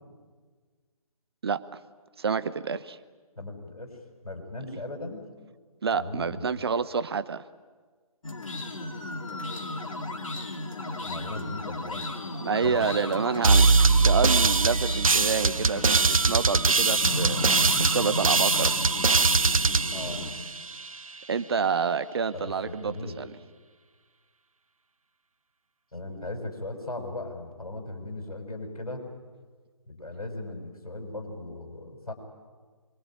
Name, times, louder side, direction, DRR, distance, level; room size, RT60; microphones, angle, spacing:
voice 1, 2.2-3.0 5.8-7.4 12.4-13.7 14.0-17.4 17.8-18.8 21.3-23.3, right 5 dB, 45° right, 13 dB, 1.1 m, -28 dB
voice 2, 3.4-3.9 4.2-5.2 5.9-6.5 11.0-12.1 12.6-12.8 19.9-20.3 22.3-23.2 25.9-29.1 29.9-32.1, left 2 dB, 80° left, 4 dB, 6.2 m, -37 dB
sound 1, 8.2-20.3, left 2 dB, 60° left, 3.4 m, -34 dB
sound 2, 13.4-20.9, right 4 dB, 65° right, 1.0 m, -22 dB
25.5 x 23.0 x 9.0 m, 1.5 s
figure-of-eight pair, 150°, 19 cm